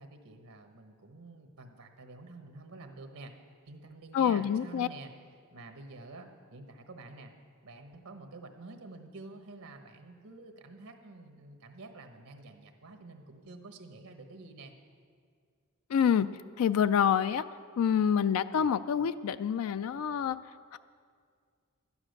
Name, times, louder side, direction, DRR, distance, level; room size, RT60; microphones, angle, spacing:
voice 1, 0.0-3.3 3.7-5.1 5.5-7.3 7.6-14.7, right 3 dB, 85° right, 6 dB, 1.1 m, -49 dB
voice 2, 4.1-4.9 15.9-16.3 16.6-17.4 17.8-20.4 20.7-20.8, left 8 dB, 75° left, 14 dB, 0.3 m, -27 dB
12.5 x 9.8 x 6.5 m, 2.1 s
head